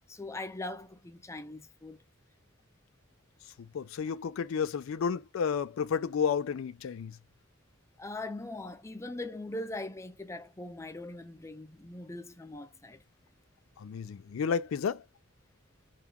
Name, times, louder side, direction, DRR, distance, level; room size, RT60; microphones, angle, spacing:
voice 1, 0.1-2.0 8.0-13.0, left 2 dB, 15° left, 0.5 m, -41 dB
voice 2, 3.7-7.1 13.8-15.0, left 6 dB, 80° left, 0.4 m, -31 dB
3.8 x 2.4 x 2.9 m
head